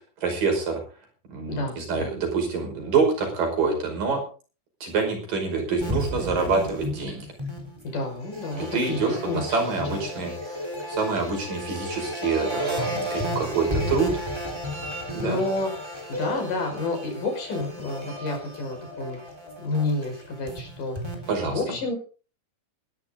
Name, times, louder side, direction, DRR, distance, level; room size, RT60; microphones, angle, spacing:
voice 1, 0.2-0.8 1.3-4.2 4.8-7.3 8.6-14.1 15.1-15.4 21.3-21.6, right 4 dB, 75° right, 3 dB, 7.1 m, -26 dB
voice 2, 1.5-2.1 7.8-9.6 9.9-10.0 15.2-15.7 16.1-19.2 19.6-21.0 21.4-22.0, left 2 dB, 70° left, 3 dB, 6.9 m, -29 dB
sound 1, 5.8-21.4, equal, 10° right, 3.4 m, -33 dB
20.5 x 12.5 x 3.8 m, 0.37 s
omnidirectional pair, 3.9 m